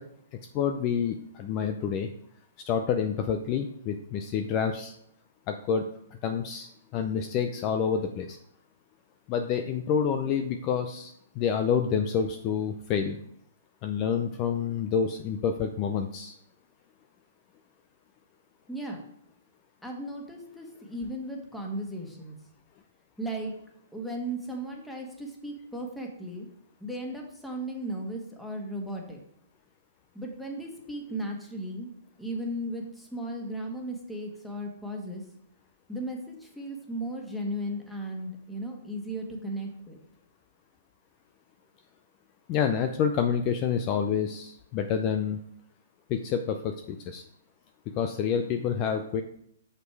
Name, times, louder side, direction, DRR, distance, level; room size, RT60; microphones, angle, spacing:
voice 1, 0.5-2.1 2.7-4.9 5.5-5.8 6.2-8.4 9.3-13.2 13.8-16.3 42.5-45.4 46.1-47.2 47.9-49.2, left 7 dB, 35° left, 6 dB, 0.5 m, -28 dB
voice 2, 18.7-19.0 19.8-22.3 23.2-23.5 23.9-26.5 26.8-29.2 30.1-31.9 32.2-35.2 35.9-40.0, right 1 dB, 5° left, 0 dB, 1.5 m, -36 dB
6.2 x 5.3 x 4.7 m, 0.71 s
hypercardioid pair, 130°, 0 cm